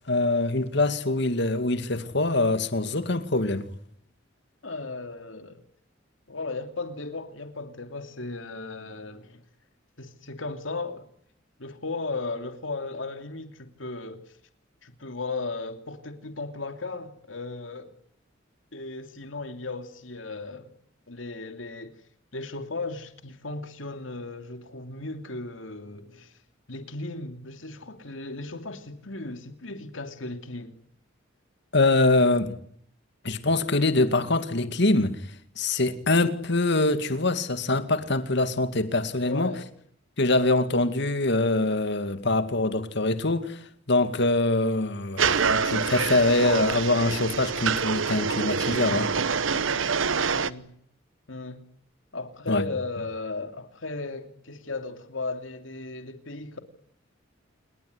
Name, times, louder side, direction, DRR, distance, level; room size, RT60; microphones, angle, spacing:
voice 1, 0.1-3.7 31.7-32.5 33.2-35.2 35.6-39.5 40.2-43.6 43.9-49.1 52.5-52.6, left 2 dB, 60° left, 2.3 m, -24 dB
voice 2, 4.6-5.6 6.3-9.4 10.0-11.1 11.6-14.2 14.8-17.9 18.7-20.7 21.1-22.0 22.3-26.3 26.7-30.8 39.2-39.7 49.5-50.0 50.3-50.7 51.3-51.6 52.1-56.6, left 3 dB, 80° left, 2.9 m, -36 dB
sound 1, 45.2-50.5, right 5 dB, 80° right, 1.1 m, -26 dB
28.5 x 21.5 x 9.6 m
head